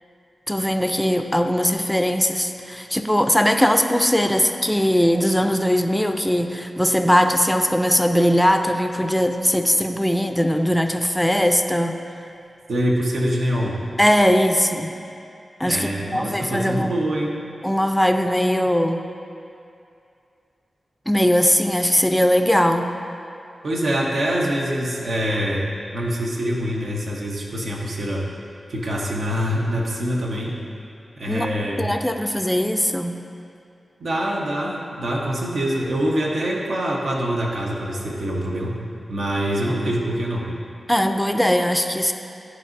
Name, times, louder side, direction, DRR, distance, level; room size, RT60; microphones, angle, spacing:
voice 1, 0.5-12.0 14.0-14.9 15.6-16.9 17.6-19.1 21.1-23.0 31.3-31.5 31.8-33.2 40.9-42.1, equal, 5° left, 6 dB, 0.4 m, -20 dB
voice 2, 12.7-13.8 15.6-17.4 23.6-25.7 25.9-28.3 28.7-30.6 31.2-31.8 34.0-38.7 39.1-40.5, equal, 80° right, -3 dB, 0.9 m, -24 dB
10.5 x 4.1 x 2.6 m, 2.5 s
wide cardioid pair, 70°, 0 cm